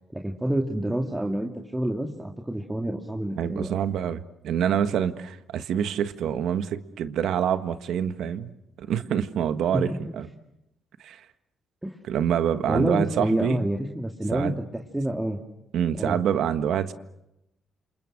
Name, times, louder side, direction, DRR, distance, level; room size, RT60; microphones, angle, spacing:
voice 1, 0.1-3.7 9.7-10.2 11.8-12.0 12.7-15.4 16.0-16.2, right 1 dB, 10° right, 1 dB, 2.3 m, -28 dB
voice 2, 3.4-8.5 8.8-9.9 10.2-10.3 11.0-11.2 12.1-13.7 14.3-14.5 15.7-16.9, right 9 dB, 75° right, 10 dB, 1.5 m, -26 dB
29.5 x 27.5 x 6.6 m, 0.87 s
cardioid pair, 90°, 0 cm